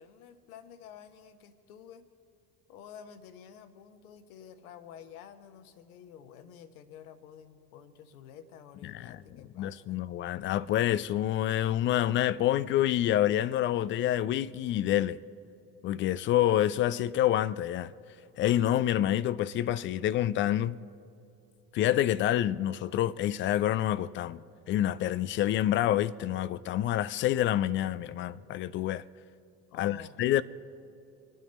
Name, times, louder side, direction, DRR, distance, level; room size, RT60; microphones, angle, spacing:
voice 1, 0.0-2.1 2.7-10.1 29.7-30.2, left 8 dB, 65° left, 1.3 m, -50 dB
voice 2, 8.8-9.1 9.6-15.2 15.8-17.9 18.4-20.8 21.7-24.4 24.7-29.0 29.8-30.4, left 12 dB, 25° left, 0.4 m, -27 dB
27.5 x 9.4 x 4.2 m
figure-of-eight pair, 60°, 48 cm